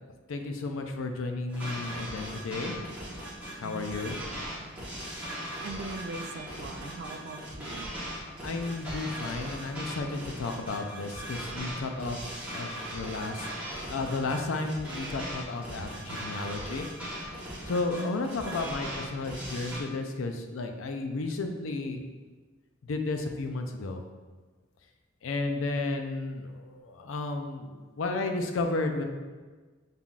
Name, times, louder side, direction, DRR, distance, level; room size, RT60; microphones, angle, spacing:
voice 1, 0.3-2.8 3.6-4.2 8.4-12.2 12.5-16.9 17.7-22.0 22.9-24.0 25.2-29.0, left 3 dB, 80° left, 5 dB, 0.5 m, -33 dB
sound 1, 1.5-19.8, equal, 5° right, 1.1 m, -39 dB
voice 2, 3.6-4.0 5.6-7.9 17.8-18.1, right 3 dB, 55° right, 5 dB, 0.4 m, -40 dB
5.6 x 3.8 x 2.4 m, 1.4 s
head